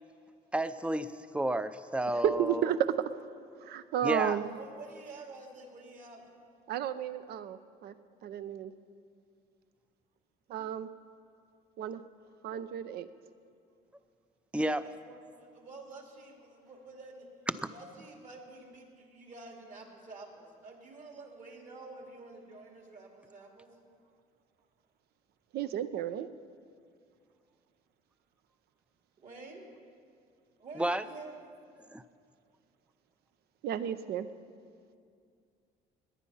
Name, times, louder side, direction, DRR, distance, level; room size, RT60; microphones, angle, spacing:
voice 1, 0.5-2.7 4.0-4.4 14.5-14.9 17.6-17.7 30.8-31.0 31.9-32.0, right 1 dB, 5° right, 13 dB, 0.5 m, -31 dB
voice 2, 2.2-2.8 3.6-4.5 6.7-7.9 8.2-8.7 10.5-10.9 11.8-12.0 12.4-13.1 25.5-26.3 33.6-34.3, right 10 dB, 70° right, 13 dB, 0.7 m, -32 dB
voice 3, 4.2-6.3 14.7-17.3 17.7-23.8 29.2-29.7 30.6-31.4, right 3 dB, 50° right, 1 dB, 2.7 m, -49 dB
18.5 x 10.5 x 5.6 m, 2.3 s
cardioid pair, 110°, 17 cm